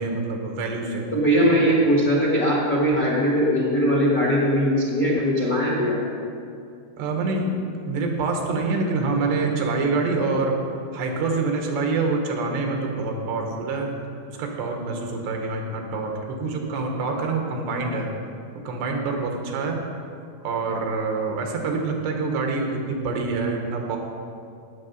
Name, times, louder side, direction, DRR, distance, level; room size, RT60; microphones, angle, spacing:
voice 1, 0.0-1.1 7.0-7.5 7.9-10.6 10.9-13.9 14.3-18.1 18.7-19.8 20.4-24.0, right 3 dB, 80° right, 2 dB, 3.5 m, -26 dB
voice 2, 1.1-6.0, equal, 90° left, -3 dB, 0.8 m, -20 dB
17.0 x 7.2 x 5.4 m, 2.4 s
omnidirectional pair, 4.8 m